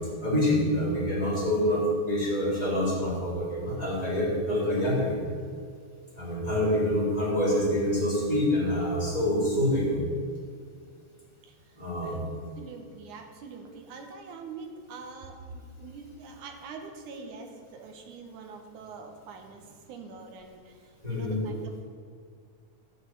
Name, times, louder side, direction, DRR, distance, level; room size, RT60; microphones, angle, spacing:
voice 1, 0.2-5.2 6.1-9.9 11.8-12.2 21.0-21.4, left 1 dB, 10° right, -5 dB, 3.6 m, -26 dB
voice 2, 11.4-11.8 12.0-12.2 12.6-21.8, right 4 dB, 80° right, 4 dB, 2.7 m, -44 dB
11.5 x 6.4 x 9.1 m, 2.1 s
omnidirectional pair, 3.5 m